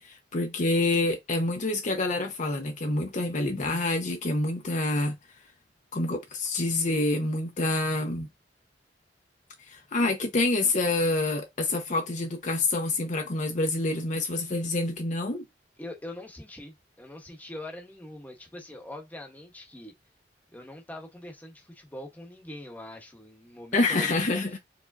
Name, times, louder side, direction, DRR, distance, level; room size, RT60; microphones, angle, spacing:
voice 1, 0.0-5.2 5.9-8.3 9.7-15.4 23.7-24.6, left 2 dB, 45° left, 0.8 m, -27 dB
voice 2, 15.8-19.9 20.5-24.3, left 1 dB, 10° left, 1.1 m, -43 dB
4.8 x 3.4 x 2.7 m
head